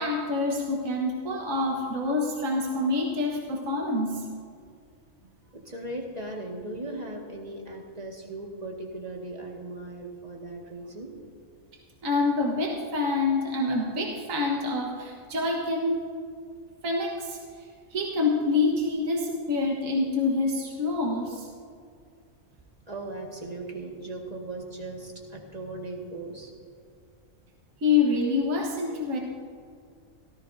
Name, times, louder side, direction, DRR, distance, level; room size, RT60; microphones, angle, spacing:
voice 1, 0.0-4.2 12.0-16.1 16.8-17.4 17.9-21.5 27.8-29.2, left 3 dB, 70° right, -1 dB, 1.8 m, -26 dB
voice 2, 5.5-11.1 22.9-26.5, right 2 dB, 30° right, 0 dB, 1.9 m, -38 dB
17.5 x 14.5 x 2.7 m, 2.2 s
omnidirectional pair, 1.4 m